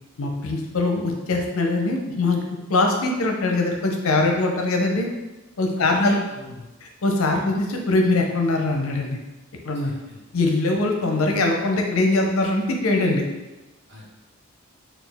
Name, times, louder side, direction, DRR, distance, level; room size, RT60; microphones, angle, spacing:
voice 1, 0.2-2.4 2.7-5.1 5.6-6.1 7.0-9.2 9.6-9.9 10.3-13.2, left 2 dB, 70° left, 2 dB, 0.6 m, -22 dB
voice 2, 5.8-6.6 7.3-7.5 9.8-10.2 13.9-14.1, left 1 dB, 50° right, -6 dB, 1.1 m, -36 dB
4.1 x 2.4 x 3.5 m, 1.1 s
head